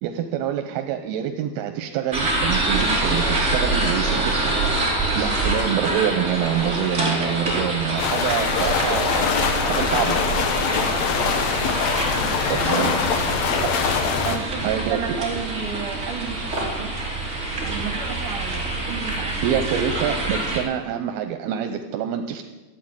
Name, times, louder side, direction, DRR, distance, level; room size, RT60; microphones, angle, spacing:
voice 1, 0.0-4.6 5.2-9.2 9.7-10.2 12.5-12.9 13.3-13.7 14.6-15.2 19.4-22.4, right 9 dB, 90° right, 6 dB, 2.7 m, -26 dB
sound 1, 2.1-20.6, right 2 dB, 20° right, 3.3 m, -26 dB
voice 2, 5.2-5.5 12.2-12.4 12.7-13.1 14.2-17.0 17.6-19.8, right 7 dB, 70° right, 6 dB, 3.4 m, -33 dB
sound 2, 8.0-14.4, left 6 dB, 60° left, 1.9 m, -23 dB
13.5 x 9.1 x 8.8 m, 1.2 s
omnidirectional pair, 4.3 m